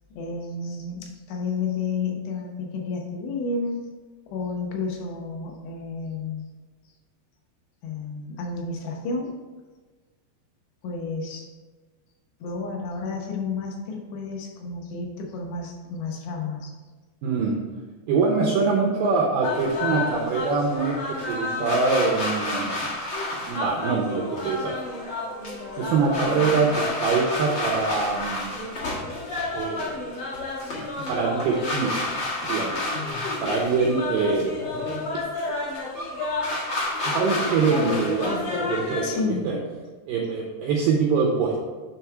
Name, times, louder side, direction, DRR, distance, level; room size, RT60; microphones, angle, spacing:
voice 1, 0.2-3.8 4.3-6.4 7.8-9.3 10.8-11.5 12.4-16.7 39.0-39.6, left 4 dB, 85° left, 1 dB, 3.2 m, -31 dB
voice 2, 17.2-17.6 18.1-22.9 23.5-24.8 25.8-28.5 29.5-30.4 31.1-32.1 32.4-32.7 33.4-34.5 34.9-35.0 37.0-39.6 40.1-41.6, right 4 dB, 85° right, -1 dB, 2.0 m, -24 dB
sound 1, 19.4-39.2, left 2 dB, 70° left, 1.1 m, -30 dB
9.6 x 3.6 x 4.6 m, 1.3 s
omnidirectional pair, 4.9 m